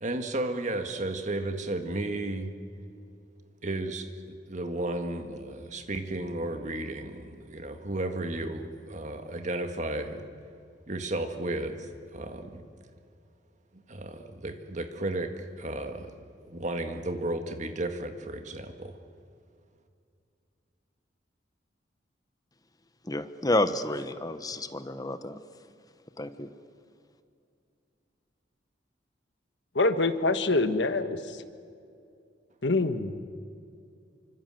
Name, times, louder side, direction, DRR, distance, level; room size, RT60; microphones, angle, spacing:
voice 1, 0.0-2.5 3.6-10.2 10.9-12.6 13.9-19.0, right 2 dB, 40° right, 6 dB, 1.9 m, -33 dB
voice 2, 23.1-25.4 26.2-26.5, left 1 dB, 20° left, 11 dB, 1.0 m, -30 dB
voice 3, 29.7-31.2 32.6-33.1, left 2 dB, 75° left, 9 dB, 1.5 m, -25 dB
27.5 x 25.5 x 7.8 m, 2.4 s
head